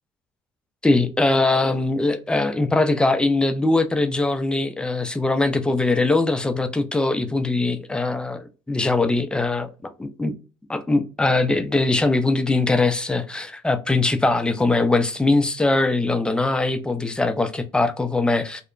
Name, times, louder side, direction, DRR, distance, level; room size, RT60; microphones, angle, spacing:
voice 1, 0.8-10.3 10.7-18.6, left 2 dB, 10° left, 0.4 m, -21 dB
2.9 x 2.1 x 2.4 m
supercardioid pair, 80°, 11 cm